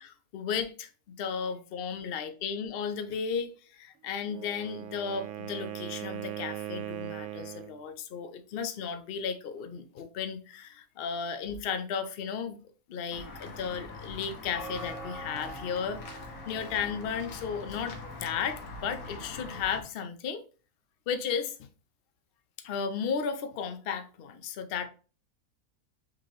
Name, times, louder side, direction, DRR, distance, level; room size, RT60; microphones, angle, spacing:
voice 1, 0.0-12.6 12.9-20.4 21.1-21.7 22.6-24.9, left 6 dB, 55° left, 0.6 m, -34 dB
Wind instrument woodwind instrument, 4.2-7.8, right 13 dB, 65° right, 0.8 m, -39 dB
Walk footsteps / Bell, 13.1-19.8, left 2 dB, 75° left, 1.4 m, -42 dB
5.0 x 2.9 x 3.0 m
omnidirectional pair, 1.5 m